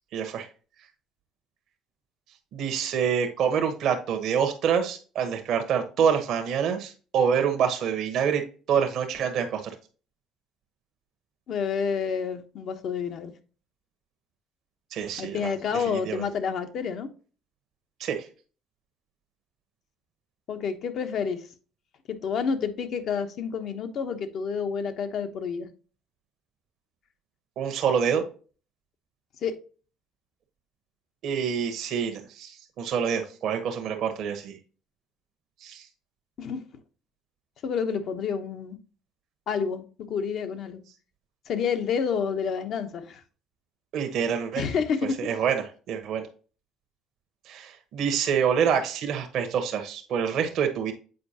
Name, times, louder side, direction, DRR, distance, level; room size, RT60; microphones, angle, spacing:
voice 1, 0.1-0.5 2.5-8.4 8.7-9.7 14.9-16.2 18.0-18.3 27.6-28.2 31.2-34.6 35.6-35.9 43.9-44.6 45.2-46.2 47.5-50.9, right 7 dB, 65° right, 5 dB, 1.1 m, -26 dB
voice 2, 11.5-13.3 15.2-17.1 20.5-21.4 22.1-25.7 29.4-29.6 36.4-36.6 37.6-38.8 39.5-40.8 41.5-43.2 44.6-45.3, left 6 dB, 60° left, 7 dB, 1.0 m, -29 dB
7.8 x 4.6 x 2.9 m, 0.38 s
supercardioid pair, 70°, 0 cm